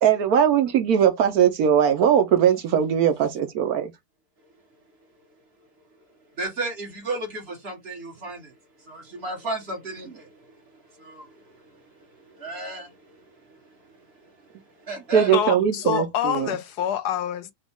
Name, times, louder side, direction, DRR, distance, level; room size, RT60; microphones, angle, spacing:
voice 1, 0.0-3.9 15.1-16.5, right 8 dB, 70° right, 1.1 m, -20 dB
voice 2, 6.4-15.3, right 3 dB, 40° right, 1.6 m, -35 dB
voice 3, 15.3-17.5, left 9 dB, 75° left, 1.2 m, -26 dB
5.1 x 2.3 x 3.5 m
omnidirectional pair, 1.8 m